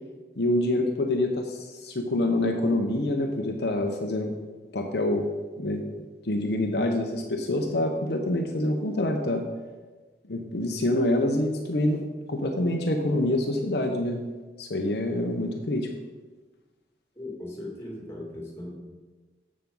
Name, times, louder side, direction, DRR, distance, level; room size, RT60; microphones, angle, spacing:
voice 1, 0.4-4.3 4.7-5.3 5.6-5.8 6.2-9.4 10.3-12.0 12.3-14.2 14.6-15.9, left 1 dB, 65° left, 2 dB, 0.8 m, -26 dB
voice 2, 17.2-18.7, left 1 dB, 15° left, -3 dB, 2.4 m, -38 dB
7.4 x 6.9 x 5.4 m, 1.3 s
head